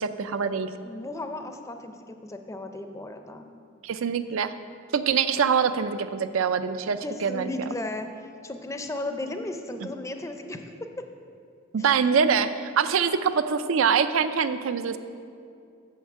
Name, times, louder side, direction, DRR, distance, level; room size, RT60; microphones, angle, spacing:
voice 1, 0.0-0.7 3.8-4.5 4.9-7.5 11.7-15.0, right 6 dB, 80° right, 12 dB, 0.4 m, -24 dB
voice 2, 0.8-3.4 6.9-11.0 11.8-11.9, left 1 dB, 15° left, 6 dB, 0.5 m, -35 dB
7.0 x 5.9 x 7.3 m, 2.4 s
head